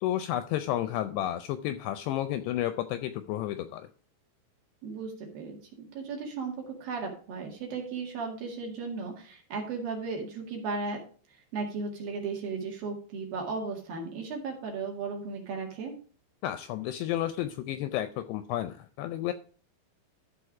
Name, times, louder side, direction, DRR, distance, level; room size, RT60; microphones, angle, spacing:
voice 1, 0.0-3.9 16.4-19.3, left 12 dB, 85° left, 10 dB, 2.4 m, -31 dB
voice 2, 4.8-5.6 5.9-11.0 11.5-15.9, right 4 dB, 60° right, 0 dB, 3.5 m, -35 dB
13.5 x 4.6 x 4.9 m, 0.42 s
omnidirectional pair, 5.3 m